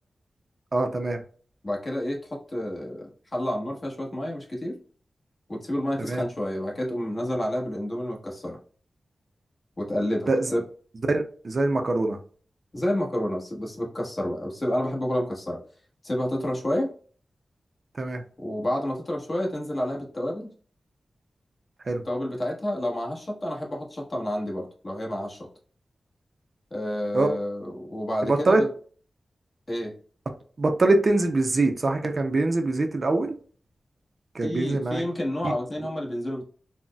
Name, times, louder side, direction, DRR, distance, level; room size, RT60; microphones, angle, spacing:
voice 1, 0.7-1.2 6.0-6.2 10.3-10.5 11.1-12.2 18.0-18.2 21.9-22.0 27.1-27.3 28.3-28.6 30.6-33.4 34.4-35.0 35.4-35.5, right 2 dB, 45° right, 0.4 m, -23 dB
voice 2, 1.6-4.8 5.5-8.6 9.8-10.6 12.7-15.6 16.0-16.9 18.4-20.5 22.0-25.5 26.7-28.7 29.7-29.9 34.4-36.4, left 1 dB, 35° left, 1.0 m, -29 dB
3.8 x 2.0 x 2.2 m
wide cardioid pair, 105°, 0 cm